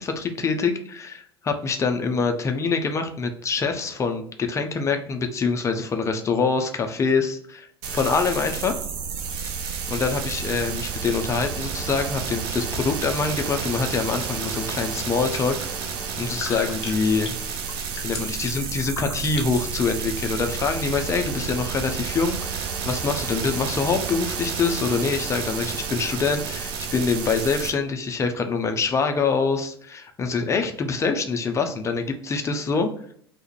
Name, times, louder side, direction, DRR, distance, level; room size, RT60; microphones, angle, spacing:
voice 1, 0.0-7.7 7.9-8.7 9.4-9.5 9.9-15.7 16.2-17.3 18.0-32.9, left 4 dB, 20° left, 6 dB, 0.4 m, -25 dB
sound 1, 7.8-27.7, right 6 dB, 60° right, 0.5 m, -31 dB
sound 2, 14.4-19.8, left 3 dB, 85° left, 0.4 m, -39 dB
2.3 x 2.1 x 2.8 m, 0.63 s
figure-of-eight pair, 70°, 13 cm